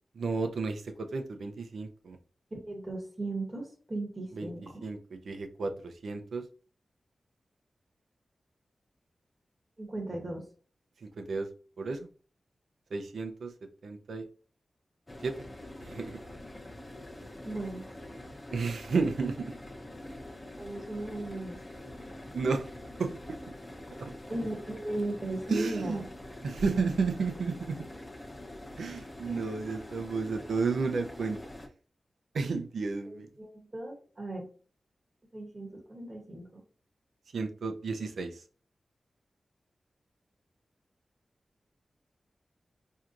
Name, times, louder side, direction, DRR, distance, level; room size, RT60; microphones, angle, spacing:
voice 1, 0.2-2.2 4.3-4.5 4.8-6.4 11.0-11.5 11.8-12.1 12.9-13.5 13.8-14.3 15.2-15.3 15.8-16.2 18.5-19.5 22.3-22.7 23.0-23.4 24.0-24.1 25.5-26.0 26.4-27.9 28.8-31.4 32.3-33.3 37.3-38.4, right 4 dB, 90° right, 6 dB, 0.5 m, -32 dB
voice 2, 2.5-4.8 9.8-10.4 17.4-17.8 20.6-21.6 24.3-26.0 29.2-29.4 33.1-34.5 35.3-36.6, right 2 dB, 25° right, -1 dB, 1.0 m, -37 dB
sound 1, 15.1-31.7, left 1 dB, 25° left, 0.6 m, -45 dB
4.5 x 2.7 x 2.5 m, 0.40 s
wide cardioid pair, 80°, 0 cm